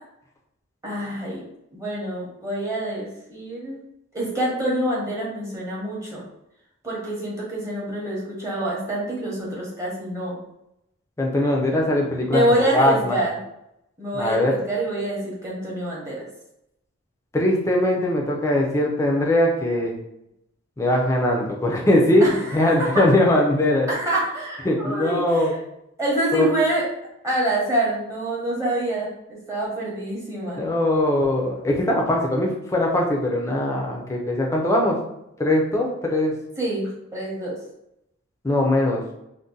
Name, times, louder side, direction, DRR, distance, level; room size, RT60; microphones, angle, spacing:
voice 1, 0.8-1.4 1.7-3.8 4.1-6.2 6.8-10.4 11.7-12.0 12.3-13.3 14.0-16.2 22.2-23.0 23.9-25.5 26.0-26.9 27.2-30.6 36.6-37.6, right 1 dB, 15° right, -5 dB, 0.8 m, -26 dB
voice 2, 11.2-13.2 14.1-14.6 17.3-20.0 20.8-22.2 22.5-23.9 24.6-25.5 26.3-26.5 30.6-35.0 35.4-36.3 38.4-39.0, left 1 dB, 15° left, -1 dB, 0.4 m, -21 dB
2.6 x 2.1 x 3.7 m, 0.83 s
head